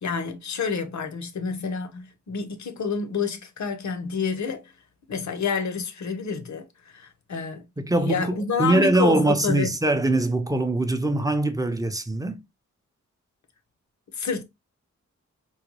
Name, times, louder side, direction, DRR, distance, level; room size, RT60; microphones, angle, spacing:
voice 1, 0.0-4.7 5.1-7.7 8.0-9.7 14.1-14.4, left 5 dB, 70° left, 0.7 m, -29 dB
voice 2, 7.8-8.3 8.6-12.4, right 2 dB, 10° right, 0.5 m, -22 dB
3.9 x 2.2 x 3.0 m
wide cardioid pair, 95°, 29 cm